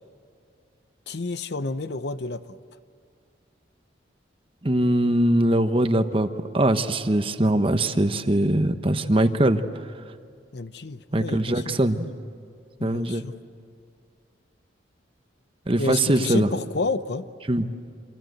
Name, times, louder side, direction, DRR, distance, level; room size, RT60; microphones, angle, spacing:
voice 1, 1.1-2.6 10.5-11.8 12.8-13.3 15.8-17.3, left 3 dB, 60° left, 12 dB, 0.8 m, -30 dB
voice 2, 4.6-6.3 6.5-9.6 11.1-12.1 12.8-13.2 15.7-16.5 17.5-17.7, right 1 dB, 30° right, 9 dB, 1.0 m, -21 dB
28.0 x 26.0 x 7.9 m, 2.2 s
head